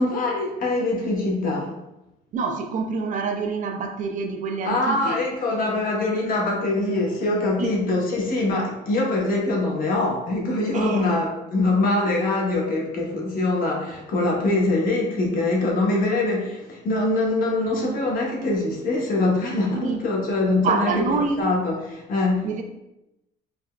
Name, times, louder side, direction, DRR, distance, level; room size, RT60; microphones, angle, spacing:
voice 1, 0.0-1.8 4.6-21.0 21.4-22.5, left 2 dB, 55° left, -1 dB, 0.8 m, -23 dB
voice 2, 2.3-5.2 7.6-7.7 10.7-11.2 19.7-20.0 20.5-21.5 22.4-22.6, right 4 dB, 50° right, 4 dB, 0.4 m, -26 dB
3.9 x 2.1 x 2.2 m, 0.91 s
cardioid pair, 110°, 17 cm